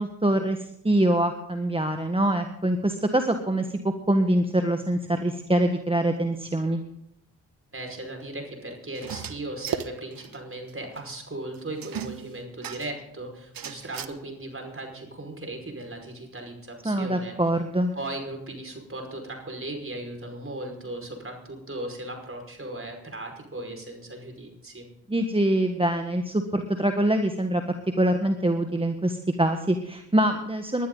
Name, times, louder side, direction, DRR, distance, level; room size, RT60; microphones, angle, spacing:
voice 1, 0.0-6.8 16.8-17.9 25.1-30.9, right 1 dB, 15° right, 5 dB, 1.4 m, -24 dB
voice 2, 7.7-17.3 17.9-24.9, right 1 dB, 35° right, 3 dB, 5.3 m, -37 dB
sound 1, 9.0-10.4 10.7-10.8 11.0-11.1 11.8-13.0 13.5-14.1, right 8 dB, 55° right, 1.1 m, -35 dB
20.5 x 11.0 x 4.0 m, 0.76 s
supercardioid pair, 45°, 40 cm